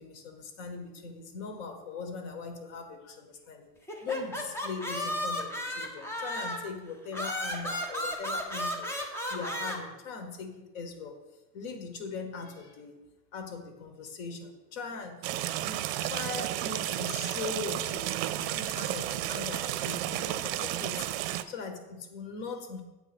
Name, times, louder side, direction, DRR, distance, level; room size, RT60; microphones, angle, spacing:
voice 1, 0.0-3.7 4.0-8.9 9.3-11.2 11.5-13.0 13.3-15.2 15.5-21.1 21.5-22.8, left 4 dB, 85° left, 6 dB, 1.5 m, -40 dB
sound 1, 3.9-6.7 7.1-9.8, equal, 10° left, 0.6 m, -34 dB
sound 2, 15.2-21.4, right 13 dB, 75° right, 0.5 m, -32 dB
8.1 x 3.9 x 6.1 m, 1.1 s
cardioid pair, 170°, 33 cm